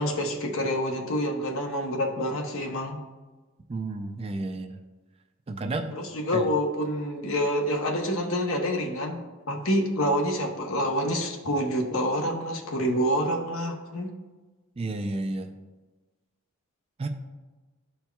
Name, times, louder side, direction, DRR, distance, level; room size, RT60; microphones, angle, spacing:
voice 1, 0.0-3.0 5.9-9.2 9.5-14.1, equal, 70° left, 3 dB, 0.9 m, -27 dB
voice 2, 3.7-4.8 5.5-6.0 6.3-6.5 14.8-15.5 17.0-17.1, right 2 dB, 25° right, 6 dB, 0.4 m, -31 dB
12.5 x 4.4 x 2.3 m, 1.3 s
head